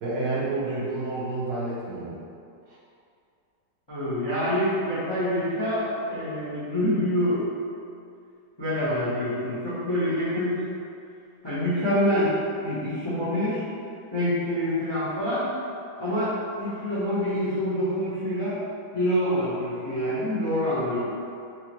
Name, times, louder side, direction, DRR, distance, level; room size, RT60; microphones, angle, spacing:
voice 1, 0.0-2.2 2.7-2.8, right 2 dB, 70° right, -7 dB, 1.3 m, -29 dB
voice 2, 3.9-7.4 8.6-10.6 11.4-13.6 14.1-15.5 16.0-18.5 18.9-21.1, equal, 30° left, -13 dB, 0.5 m, -26 dB
4.5 x 2.1 x 2.9 m, 2.5 s
omnidirectional pair, 2.1 m